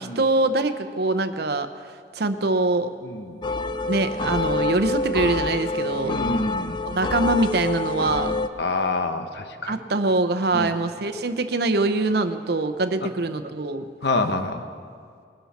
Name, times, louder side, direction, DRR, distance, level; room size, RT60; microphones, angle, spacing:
voice 1, 0.0-1.7 2.1-2.9 3.9-6.2 6.9-8.4 9.7-13.8, right 2 dB, 65° right, 10 dB, 0.8 m, -23 dB
voice 2, 3.0-3.4 6.0-6.8 8.6-9.8 10.5-10.7 14.0-14.6, left 3 dB, 70° left, 7 dB, 1.0 m, -27 dB
sound 1, 3.4-8.5, left 3 dB, 25° left, 0.4 m, -27 dB
21.5 x 11.5 x 4.3 m, 2.2 s
head